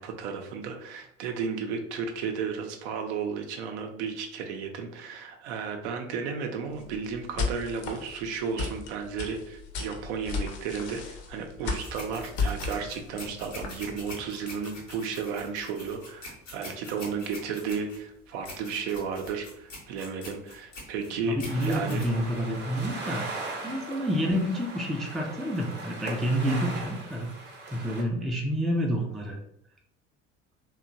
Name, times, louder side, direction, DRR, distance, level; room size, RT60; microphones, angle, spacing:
voice 1, 0.0-22.0, right 5 dB, 65° right, 4 dB, 0.6 m, -33 dB
sound 1, 6.7-14.1, left 4 dB, 50° left, 0.6 m, -34 dB
sound 2, 11.8-22.9, left 1 dB, 85° left, 0.8 m, -45 dB
voice 2, 21.3-27.3 27.7-29.4, equal, ahead, 0 dB, 0.3 m, -29 dB
sound 3, 21.4-28.0, right 2 dB, 30° right, 0.8 m, -39 dB
2.8 x 2.2 x 2.5 m, 0.73 s
figure-of-eight pair, 60°, 37 cm